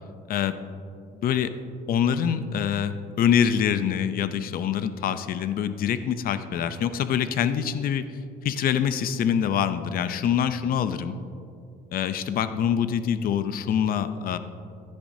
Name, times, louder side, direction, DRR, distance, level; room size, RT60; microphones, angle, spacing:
voice 1, 0.3-0.6 1.2-1.5 1.9-8.1 8.4-11.2 11.9-14.4, left 8 dB, 60° left, 12 dB, 0.6 m, -25 dB
15.5 x 10.5 x 2.8 m, 2.5 s
cardioid pair, 110°, 17 cm